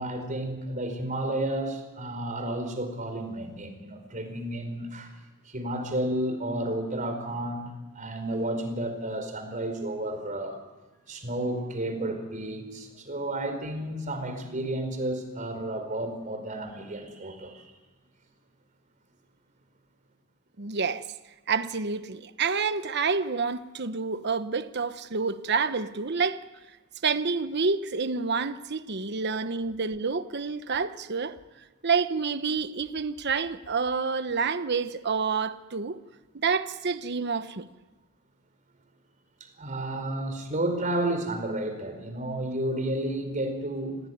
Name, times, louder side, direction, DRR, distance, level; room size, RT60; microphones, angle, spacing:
voice 1, 0.0-5.1 5.4-7.7 7.9-10.6 11.1-17.6 39.4-44.0, right 1 dB, 35° right, 4.6 m, -31 dB
voice 2, 20.6-21.0 21.5-26.4 27.0-31.3 31.8-36.0 36.3-37.7, right 5 dB, 50° right, 1.0 m, -28 dB
27.5 x 18.5 x 9.4 m
head